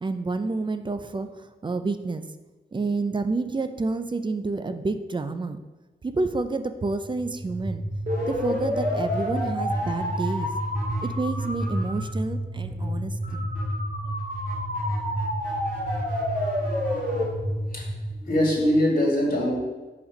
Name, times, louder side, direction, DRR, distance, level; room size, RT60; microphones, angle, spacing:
voice 1, 0.0-2.3 2.7-5.6 6.0-7.8 8.3-10.5 11.0-13.5 14.1-14.2, right 3 dB, 25° right, 10 dB, 0.4 m, -29 dB
sound 1, 7.0-18.9, equal, 45° right, 2.2 m, -28 dB
voice 2, 17.5-17.8 18.2-19.6, equal, 55° left, -2 dB, 2.0 m, -23 dB
5.6 x 4.1 x 5.4 m, 1.2 s
wide cardioid pair, 130°, 18 cm